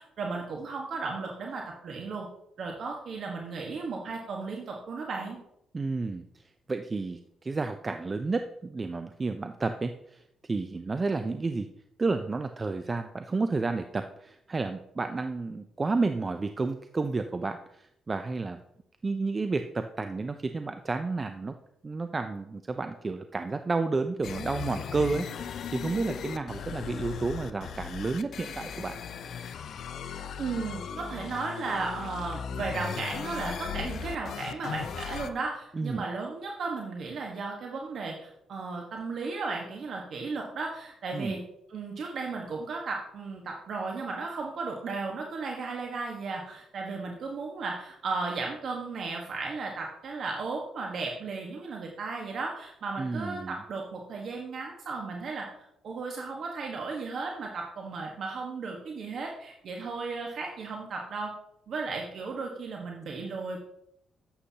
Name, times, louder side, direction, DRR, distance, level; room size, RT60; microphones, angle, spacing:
voice 1, 0.0-2.3 2.6-5.4 30.4-41.4 41.7-55.5 55.8-61.3 61.7-63.6, right 4 dB, 60° right, 0 dB, 1.4 m, -35 dB
voice 2, 5.7-6.2 6.7-10.2 10.5-11.7 12.0-18.6 19.0-21.5 21.8-29.0 35.7-36.0 41.1-41.4 53.0-53.6, right 3 dB, 30° right, 8 dB, 0.5 m, -31 dB
sound 1, 24.2-35.3, left 7 dB, 65° left, 0.7 m, -37 dB
11.5 x 8.1 x 2.9 m, 0.77 s
cardioid pair, 90°, 0 cm